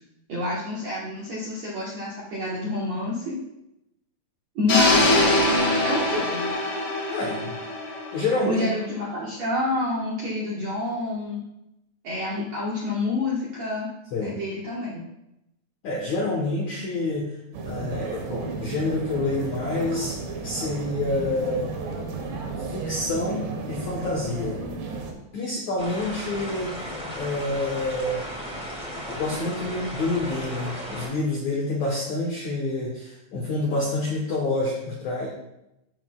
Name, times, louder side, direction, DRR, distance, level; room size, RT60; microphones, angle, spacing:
voice 1, 0.3-3.4 4.6-5.5 5.8-6.5 8.5-11.4 12.0-13.9 14.2-15.0, left 2 dB, 60° right, -7 dB, 1.7 m, -28 dB
sound 1, 4.7-8.7, left 1 dB, 55° left, 2.1 m, -23 dB
voice 2, 7.1-7.5 8.1-8.6 14.1-14.4 15.8-17.3 17.6-20.1 20.4-21.7 22.7-24.6 25.3-26.9 27.1-28.2 29.1-35.3, left 2 dB, 75° left, -3 dB, 1.7 m, -27 dB
sound 2, 17.5-25.1, right 4 dB, 80° right, 3.2 m, -33 dB
sound 3, 25.8-31.1, equal, 5° right, 0.8 m, -35 dB
14.0 x 6.2 x 2.3 m, 0.87 s
omnidirectional pair, 5.0 m